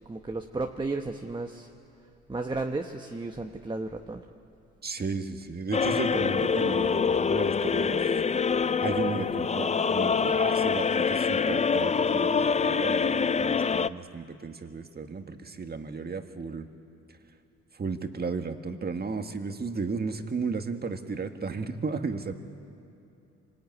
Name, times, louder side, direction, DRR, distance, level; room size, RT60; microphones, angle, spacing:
voice 1, 0.1-1.7 2.3-4.2, right 3 dB, 15° right, 4 dB, 1.2 m, -33 dB
voice 2, 4.8-8.1 8.8-16.7 17.7-22.3, right 4 dB, 30° right, 6 dB, 1.8 m, -34 dB
sound 1, 5.7-13.9, left 5 dB, 25° left, 0.5 m, -25 dB
25.5 x 20.0 x 9.6 m, 2.7 s
cardioid pair, 90°, 30 cm